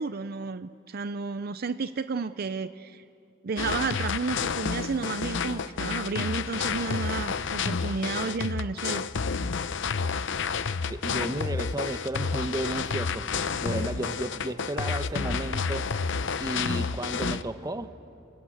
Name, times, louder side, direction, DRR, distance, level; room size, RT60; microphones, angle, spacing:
voice 1, 0.0-3.0 3.4-9.0, right 4 dB, 50° right, 12 dB, 0.5 m, -32 dB
sound 1, 3.6-17.4, left 5 dB, 60° left, 0.7 m, -30 dB
voice 2, 10.9-13.3 13.6-15.9 16.4-17.9, right 1 dB, 20° right, 10 dB, 1.0 m, -33 dB
27.5 x 27.0 x 7.9 m, 2.8 s
head